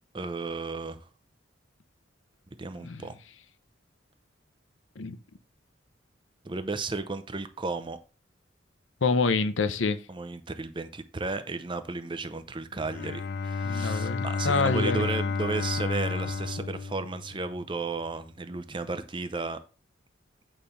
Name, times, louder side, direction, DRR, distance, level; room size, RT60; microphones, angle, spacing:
voice 1, 0.1-1.0 2.6-3.2 6.4-8.0 10.1-19.6, right 3 dB, 25° right, 0.6 m, -34 dB
voice 2, 9.0-10.0 13.7-15.1, left 4 dB, 80° left, 0.8 m, -26 dB
Bowed string instrument, 12.7-17.7, left 4 dB, 55° left, 0.4 m, -31 dB
8.9 x 3.3 x 5.6 m
head